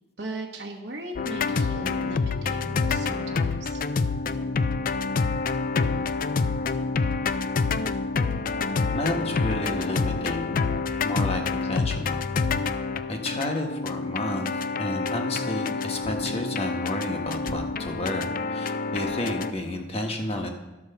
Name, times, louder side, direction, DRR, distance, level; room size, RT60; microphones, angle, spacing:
voice 1, 0.2-3.8, right 1 dB, 65° right, 0 dB, 1.1 m, -38 dB
sound 1, 1.2-19.5, left 4 dB, 50° left, 0.4 m, -27 dB
voice 2, 8.9-10.6 11.0-12.3 13.1-20.5, left 1 dB, 35° left, 3 dB, 1.2 m, -31 dB
12.0 x 4.7 x 6.6 m, 1.0 s
head